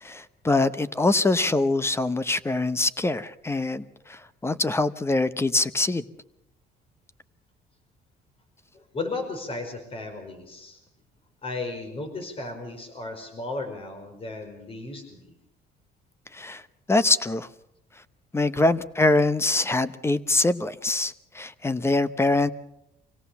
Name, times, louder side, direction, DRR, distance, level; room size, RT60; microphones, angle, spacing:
voice 1, 0.0-6.0 16.3-16.6 16.9-17.5 18.3-22.5, left 2 dB, 15° left, 0.8 m, -24 dB
voice 2, 8.7-10.8 11.4-15.4 18.6-18.7, left 3 dB, 35° left, 5.2 m, -35 dB
25.5 x 17.5 x 7.0 m
cardioid pair, 110°, 17 cm